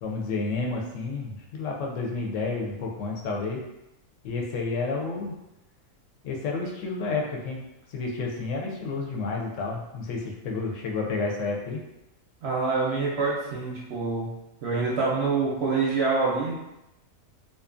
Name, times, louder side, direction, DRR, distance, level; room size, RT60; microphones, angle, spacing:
voice 1, 0.0-3.6 4.2-5.3 6.2-7.6 7.9-11.8, left 3 dB, 70° left, 0 dB, 0.9 m, -30 dB
voice 2, 12.4-14.3 14.6-16.6, right 4 dB, 65° right, -5 dB, 0.7 m, -26 dB
2.5 x 2.3 x 2.4 m, 0.92 s
omnidirectional pair, 1.4 m